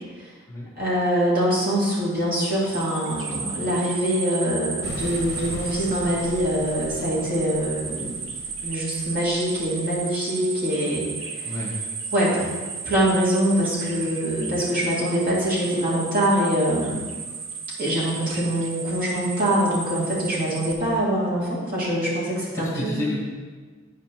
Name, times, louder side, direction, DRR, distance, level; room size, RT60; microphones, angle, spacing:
voice 1, 0.8-8.2 8.6-11.6 12.1-12.5 12.8-17.0 17.8-23.0, equal, 45° right, -7 dB, 2.3 m, -24 dB
sound 1, 2.7-20.7, right 5 dB, 70° right, 0.8 m, -34 dB
sound 2, 4.8-10.0, left 2 dB, 55° left, 0.6 m, -40 dB
voice 2, 22.6-23.2, left 1 dB, 15° left, -5 dB, 1.4 m, -30 dB
10.0 x 5.0 x 3.0 m, 1.4 s
head